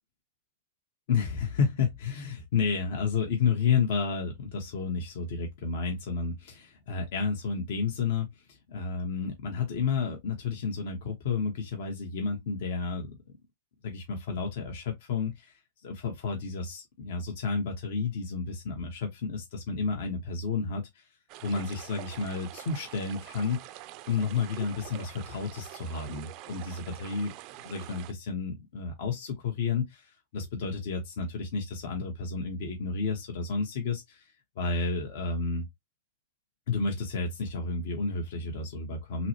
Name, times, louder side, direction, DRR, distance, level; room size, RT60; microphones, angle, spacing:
voice 1, 1.1-13.2 13.8-21.1 21.4-23.6 24.1-27.3 27.6-34.2 34.6-35.7 36.7-39.3, left 5 dB, 60° left, 1.1 m, -31 dB
sound 1, 21.3-28.1, right 15 dB, 45° right, 0.4 m, -45 dB
5.6 x 2.2 x 2.8 m
hypercardioid pair, 135°, 0 cm